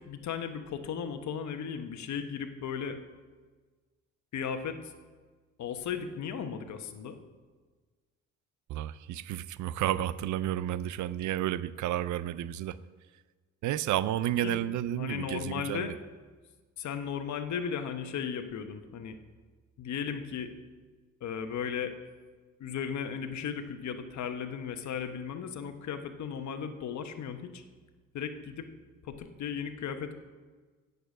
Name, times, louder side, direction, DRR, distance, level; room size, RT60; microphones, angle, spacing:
voice 1, 0.0-3.0 4.3-4.9 5.6-7.2 14.4-14.6 15.0-15.9 16.8-19.2 19.8-20.5 21.2-21.9 22.6-27.6 28.1-28.7 29.0-30.1, left 7 dB, 70° left, 8 dB, 1.1 m, -36 dB
voice 2, 8.7-12.8 13.6-15.9, right 12 dB, 75° right, 17 dB, 0.5 m, -31 dB
8.7 x 6.7 x 8.1 m, 1.4 s
cardioid pair, 90°, 30 cm